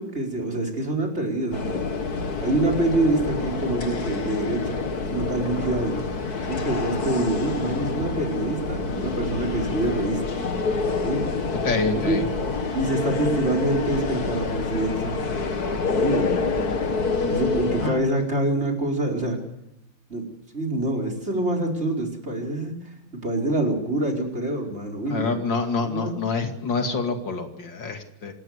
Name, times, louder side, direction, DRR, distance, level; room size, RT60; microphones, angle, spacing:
voice 1, 0.0-1.8 2.4-6.0 6.5-10.2 11.0-11.2 11.9-12.2 12.7-15.3 16.0-16.3 17.3-19.4 20.1-25.4 25.8-26.1, right 2 dB, 35° right, 4 dB, 5.0 m, -26 dB
sound 1, 1.5-17.9, left 4 dB, 55° left, 2.3 m, -27 dB
voice 2, 11.6-12.2 17.8-18.0 25.1-28.3, left 4 dB, 75° left, 5 dB, 3.1 m, -27 dB
27.5 x 13.5 x 8.1 m, 0.87 s
omnidirectional pair, 2.0 m